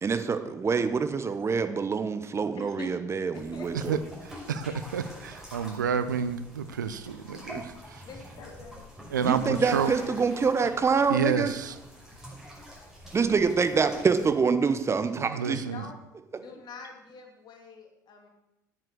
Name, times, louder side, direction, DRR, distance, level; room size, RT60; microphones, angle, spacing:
voice 1, 0.0-4.0 7.6-7.7 9.2-11.5 13.1-15.6, right 5 dB, 30° right, 10 dB, 1.1 m, -26 dB
voice 2, 2.6-2.9 3.3-3.7 7.1-7.4 8.0-8.8 9.4-10.1 10.4-10.8 15.7-16.0 16.3-18.3, left 5 dB, 45° left, 3 dB, 2.5 m, -45 dB
sound 1, 3.3-14.3, equal, 5° right, 5.7 m, -46 dB
voice 3, 3.7-8.0 9.1-9.9 11.1-11.8 15.2-15.9, right 6 dB, 85° right, 13 dB, 0.7 m, -30 dB
9.5 x 9.4 x 6.5 m, 0.92 s
figure-of-eight pair, 65°, 10 cm